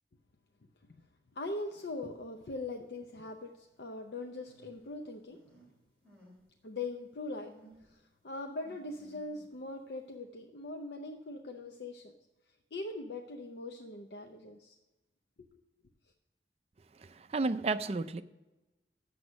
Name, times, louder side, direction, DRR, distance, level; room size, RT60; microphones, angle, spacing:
voice 1, 1.3-5.4 6.6-7.5 7.8-12.1 12.7-14.8, left 2 dB, 70° left, 0.6 m, -41 dB
sound 1, 1.7-1.9 2.5-2.6 4.5-5.7 6.0-6.4 6.8-6.9 7.4-8.0 8.6-9.6, right 1 dB, 5° left, 3.1 m, -59 dB
voice 2, 17.0-18.2, right 3 dB, 35° right, 0.4 m, -32 dB
7.9 x 7.0 x 6.3 m
head